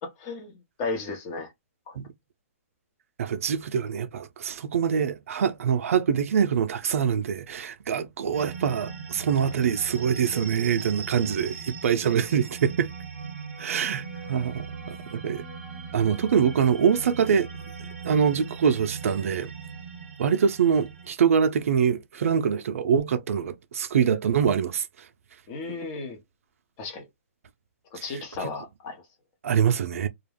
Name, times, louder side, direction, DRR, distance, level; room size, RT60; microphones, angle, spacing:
voice 1, 0.0-1.5 1.9-2.0 25.5-26.2 26.8-27.1 27.9-29.0, left 3 dB, 25° left, 0.7 m, -34 dB
voice 2, 3.2-12.9 13.6-15.4 15.9-17.5 18.0-19.5 20.2-24.9 28.4-28.5 29.4-30.1, right 7 dB, 70° right, 0.4 m, -24 dB
sound 1, 8.3-21.1, right 6 dB, 15° right, 0.9 m, -39 dB
2.3 x 2.1 x 3.2 m
hypercardioid pair, 170°, 8 cm